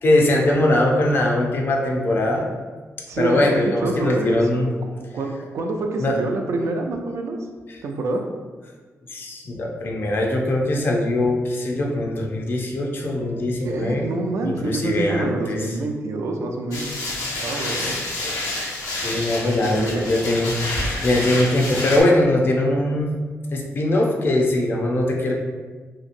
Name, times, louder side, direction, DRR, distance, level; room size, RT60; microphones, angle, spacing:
voice 1, 0.0-2.5 3.2-4.7 5.2-5.3 6.0-6.2 7.7-7.8 9.1-15.8 17.8-18.0 19.0-23.1 23.5-25.3, left 1 dB, 45° left, 0 dB, 0.5 m, -21 dB
voice 2, 3.1-7.4 7.8-8.2 13.6-17.0 17.3-18.0 19.4-20.1, right 2 dB, 65° right, 3 dB, 0.4 m, -27 dB
sound 1, 16.7-22.0, left 1 dB, 85° left, 0.7 m, -28 dB
2.9 x 2.7 x 2.5 m, 1.4 s
wide cardioid pair, 150°, 5 cm